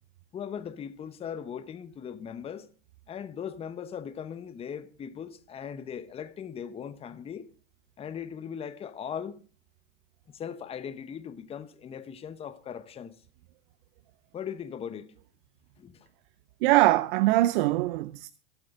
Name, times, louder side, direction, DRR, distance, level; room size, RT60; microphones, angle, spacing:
voice 1, 0.3-2.7 3.1-7.5 8.0-9.4 10.3-13.2 14.3-15.1 15.8-16.1, left 8 dB, 15° left, 1.0 m, -39 dB
voice 2, 16.6-18.3, right 17 dB, 50° right, 0.6 m, -22 dB
22.0 x 8.2 x 3.8 m
hypercardioid pair, 130°, 33 cm